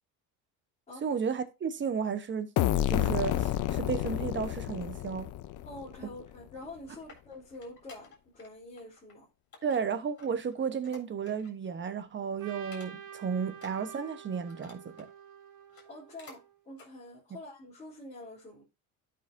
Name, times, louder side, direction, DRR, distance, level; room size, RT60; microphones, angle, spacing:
voice 1, 1.0-2.5 2.9-5.3 9.6-15.1, right 6 dB, 30° right, 1.1 m, -33 dB
sound 1, 2.6-6.2, left 12 dB, 55° left, 0.8 m, -30 dB
voice 2, 5.6-9.3 15.9-18.6, left 1 dB, 20° left, 3.7 m, -46 dB
sound 2, 6.5-8.5 8.8-9.1 9.5-11.7 12.0-12.2 12.6-13.2 13.5-15.1 15.6-16.4 16.7-16.9 17.4-17.5, left 4 dB, 40° left, 3.7 m, -55 dB
Trumpet, 12.4-16.6, right 8 dB, 60° right, 1.4 m, -48 dB
12.0 x 5.6 x 2.7 m
supercardioid pair, 100°, 37 cm